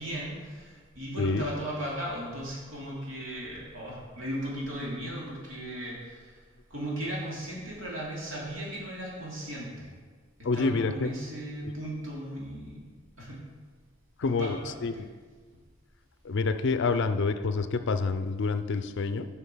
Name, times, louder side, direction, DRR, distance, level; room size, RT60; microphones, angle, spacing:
voice 1, 0.0-6.4 6.7-9.9 10.5-12.8 13.2-13.4 14.2-15.0, right 1 dB, 65° right, -5 dB, 2.9 m, -37 dB
voice 2, 1.2-1.5 10.4-11.1 14.2-15.1 16.2-19.3, left 4 dB, 60° left, 10 dB, 0.5 m, -28 dB
8.1 x 5.6 x 5.7 m, 1.5 s
head